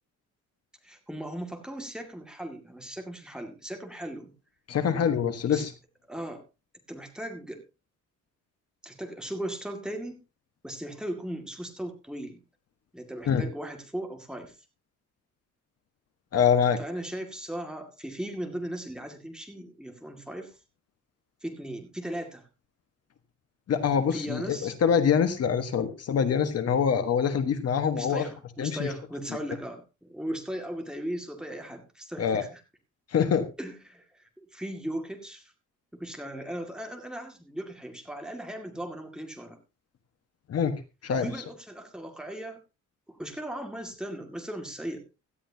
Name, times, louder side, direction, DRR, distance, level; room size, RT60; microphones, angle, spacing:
voice 1, 0.8-4.3 5.5-5.7 6.1-6.4 6.9-7.6 8.8-10.2 10.6-12.4 12.9-14.6 16.8-20.6 21.4-22.5 24.1-24.7 27.9-32.6 33.6-35.4 35.9-39.6 41.2-42.6 43.1-45.0, right 1 dB, ahead, 3 dB, 2.2 m, -37 dB
voice 2, 4.7-5.7 13.2-13.4 16.3-16.8 23.7-28.2 28.6-28.9 32.2-32.4 33.1-33.5 40.5-41.3, left 7 dB, 55° left, 9 dB, 1.5 m, -25 dB
17.0 x 12.5 x 2.8 m, 0.28 s
cardioid pair, 150°, 30 cm